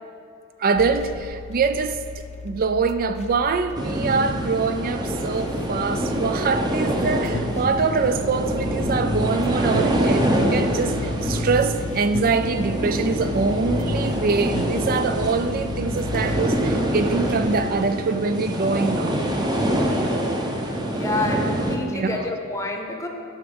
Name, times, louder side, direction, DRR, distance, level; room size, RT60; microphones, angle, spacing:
voice 1, 0.6-2.0 2.4-19.2 21.8-22.3, right 4 dB, 45° right, 0.4 m, -24 dB
sound 1, 0.8-17.7, left 4 dB, 30° left, 0.4 m, -39 dB
sound 2, 3.7-21.8, right 1 dB, 20° right, 0.7 m, -25 dB
Bass guitar, 7.0-16.5, left 2 dB, 70° left, 0.7 m, -32 dB
voice 2, 20.9-23.1, left 2 dB, 15° left, 0.8 m, -28 dB
9.5 x 5.9 x 5.4 m
head